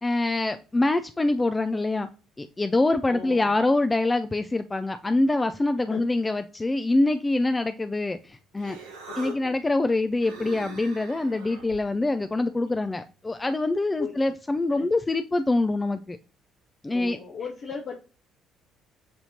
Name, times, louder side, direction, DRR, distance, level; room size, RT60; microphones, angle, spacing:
voice 1, 0.0-2.1 2.4-8.8 9.2-16.2 16.8-17.2, left 2 dB, 20° left, 0.3 m, -25 dB
voice 2, 3.1-3.5 5.9-6.1 9.2-9.6 14.0-14.2 14.7-14.9 16.9-18.0, left 5 dB, 50° left, 0.7 m, -37 dB
Human voice, 8.2-13.4, right 4 dB, 75° right, 0.9 m, -45 dB
7.0 x 2.8 x 2.6 m
figure-of-eight pair, 50°, 0 cm